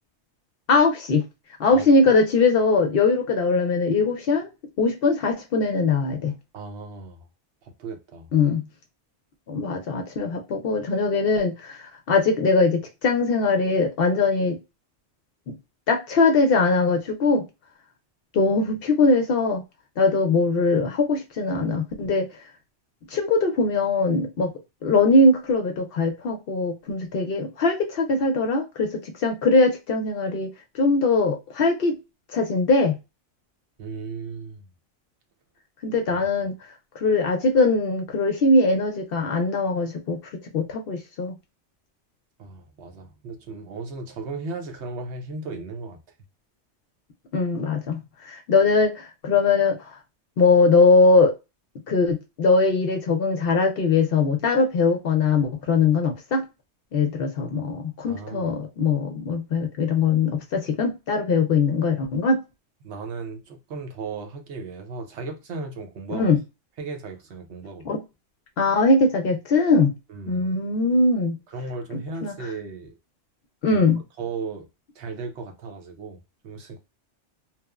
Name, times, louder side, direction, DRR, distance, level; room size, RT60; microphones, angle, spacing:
voice 1, 0.7-1.2 1.6-4.5 4.8-6.3 8.3-8.6 9.5-14.6 15.5-15.6 15.9-17.4 18.3-19.6 20.0-22.2 23.1-24.5 24.8-30.5 30.7-31.9 32.3-33.0 35.8-36.5 37.0-40.2 40.5-41.3 47.3-49.9 50.4-51.3 51.9-56.4 56.9-62.4 66.1-66.4 67.8-68.0 68.6-69.9 70.3-71.4 72.2-72.5 73.6-74.0, left 3 dB, 65° left, 0.6 m, -21 dB
voice 2, 6.5-7.2 7.8-8.3 33.8-34.6 42.4-46.0 58.1-58.5 62.8-66.3 66.8-67.9 70.1-70.4 71.5-72.9 73.7-73.8 74.2-74.7 75.0-76.2 76.4-76.8, right 4 dB, 70° right, 0.9 m, -35 dB
2.9 x 2.0 x 2.2 m
omnidirectional pair, 1.2 m